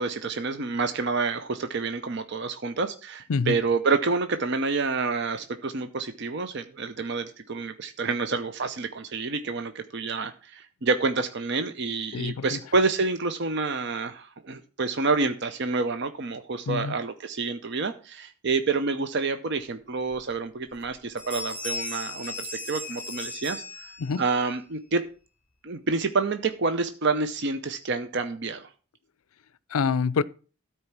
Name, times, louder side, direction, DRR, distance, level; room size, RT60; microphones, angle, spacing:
voice 1, 0.0-23.9 24.2-25.0 25.6-28.7, right 4 dB, 50° right, 0.6 m, -28 dB
voice 2, 12.1-12.6 16.7-16.9 24.0-24.2 29.7-30.2, left 5 dB, 75° left, 0.5 m, -26 dB
Bell, 20.1-20.2 20.7-20.9 21.2-24.3, left 2 dB, 5° right, 6.8 m, -36 dB
13.0 x 4.5 x 5.9 m
head